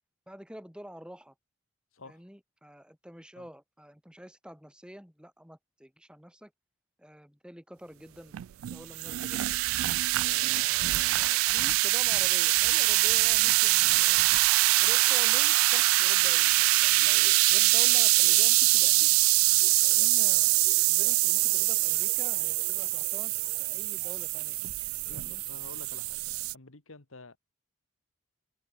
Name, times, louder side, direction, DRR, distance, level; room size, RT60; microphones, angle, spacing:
voice 1, 0.3-1.3 2.1-6.5 7.0-8.4 8.7-9.6 10.1-14.3 14.8-19.1 19.8-24.6 25.1-25.4, equal, 5° right, 3.6 m, -48 dB
sound 1, 8.3-26.5, right 21 dB, 85° right, 0.3 m, -24 dB
voice 2, 10.6-10.9 25.0-26.2 26.5-27.4, left 3 dB, 80° left, 1.9 m, -50 dB
sound 2, 12.8-14.7 15.0-24.5, right 2 dB, 40° right, 1.7 m, -55 dB
head